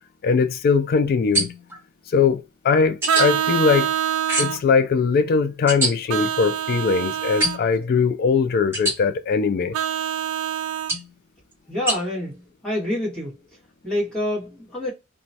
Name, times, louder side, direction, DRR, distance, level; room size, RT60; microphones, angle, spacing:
voice 1, 0.2-1.5 2.1-3.9 4.4-9.8, left 5 dB, 45° left, 0.3 m, -20 dB
sound 1, 1.3-1.8 3.0-3.3 4.3-4.7 5.7-5.9 7.4-7.8 8.7-9.0 10.9-11.1 11.9-12.0, right 1 dB, 10° right, 1.5 m, -24 dB
Vehicle horn car horn honking, 3.1-4.6 6.1-7.6 9.7-10.9, right 9 dB, 75° right, 0.3 m, -25 dB
voice 2, 11.7-13.4 13.8-14.9, left 1 dB, 5° left, 1.6 m, -27 dB
3.0 x 2.2 x 2.7 m
head